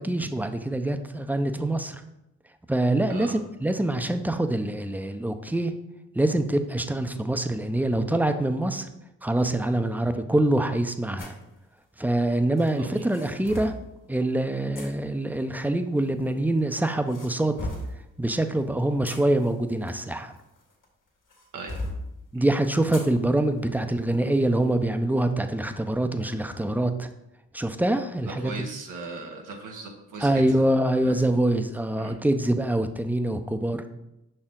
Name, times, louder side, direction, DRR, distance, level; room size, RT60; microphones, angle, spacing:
voice 1, 0.0-2.0 2.7-5.7 6.1-8.9 9.2-11.4 12.0-13.7 14.1-17.5 18.2-20.3 22.3-27.1 27.5-28.5 30.2-33.8, right 1 dB, 5° right, 8 dB, 0.5 m, -25 dB
sound 1, 11.2-11.4 12.6-13.8 14.7-14.9 16.0-16.6 17.1-18.0 18.8-20.8 21.3-22.0 22.9-23.1 23.6-23.7 24.3-24.5, left 1 dB, 80° left, 1.6 m, -37 dB
voice 2, 21.5-21.9 22.4-22.5 28.3-30.7 31.0-31.1 32.0-32.1, right 3 dB, 85° right, 1 dB, 0.8 m, -38 dB
5.7 x 4.5 x 3.7 m, 0.89 s
cardioid pair, 55°, 31 cm